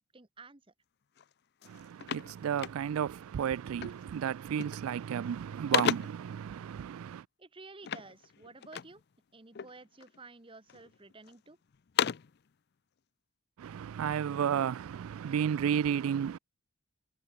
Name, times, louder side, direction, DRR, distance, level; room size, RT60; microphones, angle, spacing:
voice 1, 0.1-0.6 7.4-9.0 9.3-11.6, right 3 dB, 25° right, 1.1 m, -52 dB
sound 1, 1.2-1.3 1.6-3.2 3.8-4.1 4.4-4.9 5.3-6.3 7.8-9.0 9.5-10.2 10.7-11.4 11.7-12.4, left 7 dB, 50° left, 0.5 m, -35 dB
voice 2, 1.7-7.2 13.6-16.4, right 8 dB, 85° right, 0.3 m, -33 dB
head